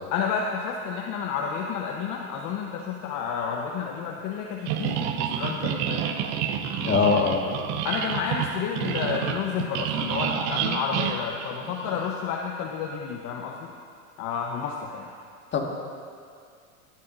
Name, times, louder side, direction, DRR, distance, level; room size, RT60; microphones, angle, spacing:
voice 1, 0.1-6.0 7.8-13.7 14.2-15.1, left 6 dB, 45° left, 0 dB, 1.0 m, -30 dB
sound 1, 4.7-12.1, right 8 dB, 60° right, 1.0 m, -29 dB
voice 2, 6.8-7.4 15.5-15.6, left 5 dB, 25° left, 0 dB, 1.9 m, -22 dB
19.0 x 10.5 x 2.7 m, 2.2 s
hypercardioid pair, 105°, 41 cm